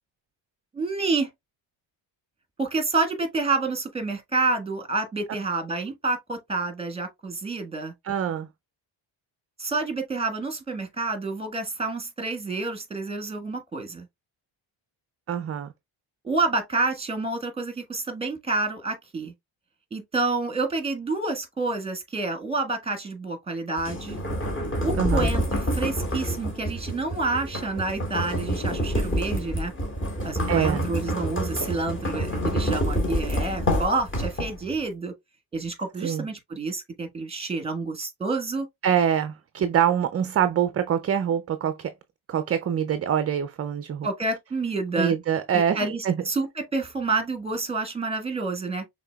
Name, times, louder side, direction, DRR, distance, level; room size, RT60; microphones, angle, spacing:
voice 1, 0.7-1.3 2.6-7.9 9.6-14.1 16.2-19.3 19.9-24.2 24.8-29.7 30.2-35.1 35.5-38.7 44.0-45.1 45.7-48.8, right 3 dB, 10° right, 1.4 m, -28 dB
voice 2, 8.0-8.5 15.3-15.7 25.0-25.3 30.5-30.9 36.0-36.3 38.8-41.9 42.3-44.1 45.0-46.2, right 8 dB, 35° right, 0.4 m, -24 dB
sound 1, 23.8-34.8, equal, 25° left, 1.7 m, -27 dB
5.8 x 3.5 x 2.3 m
cardioid pair, 115°, 48 cm